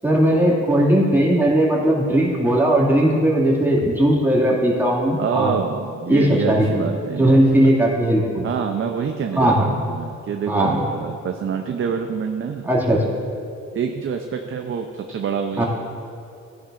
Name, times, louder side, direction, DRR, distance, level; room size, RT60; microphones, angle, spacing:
voice 1, 0.0-5.5 6.1-6.6 7.2-8.5 9.4-9.8 10.5-10.8 12.6-13.0 15.6-15.7, right 1 dB, 5° right, -5 dB, 2.3 m, -18 dB
voice 2, 5.2-7.7 8.4-12.7 13.7-15.6, right 6 dB, 45° right, 4 dB, 0.6 m, -26 dB
14.5 x 10.5 x 2.6 m, 2.6 s
cardioid pair, 90°, 30 cm